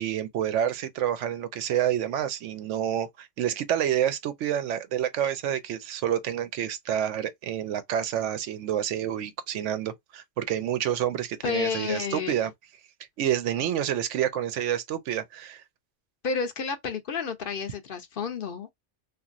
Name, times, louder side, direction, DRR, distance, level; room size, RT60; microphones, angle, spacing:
voice 1, 0.0-12.5 13.2-15.6, right 10 dB, 90° right, 0.9 m, -28 dB
voice 2, 11.4-12.3 16.2-18.7, left 5 dB, 60° left, 0.7 m, -30 dB
2.9 x 2.5 x 2.4 m
omnidirectional pair, 1.2 m